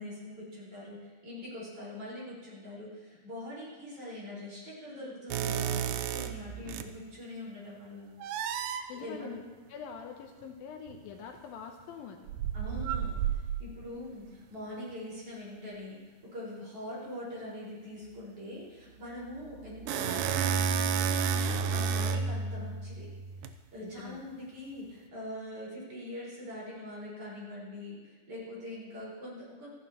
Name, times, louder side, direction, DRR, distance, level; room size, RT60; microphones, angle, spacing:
voice 1, 0.0-8.2 8.9-9.3 12.5-16.0 16.3-23.1 23.7-29.7, left 1 dB, 35° right, -7 dB, 5.7 m, -43 dB
sound 1, 5.3-7.0 8.2-8.9 10.9-11.0 12.3-13.8 19.3-23.5, right 7 dB, 80° right, 2.0 m, -31 dB
voice 2, 8.9-9.4 9.7-12.2 23.8-24.2, left 7 dB, 75° left, 4 dB, 2.5 m, -44 dB
26.5 x 10.0 x 3.0 m, 1.3 s
omnidirectional pair, 4.4 m